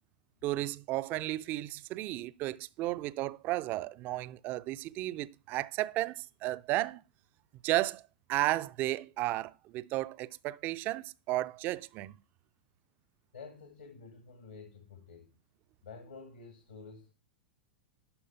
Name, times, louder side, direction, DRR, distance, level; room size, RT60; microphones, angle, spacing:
voice 1, 0.4-7.0 7.6-8.0 8.3-12.1, right 17 dB, 35° right, 0.4 m, -33 dB
voice 2, 13.3-15.3 15.8-17.1, left 4 dB, 70° left, 2.0 m, -50 dB
11.5 x 4.2 x 5.3 m
figure-of-eight pair, 95°, 5 cm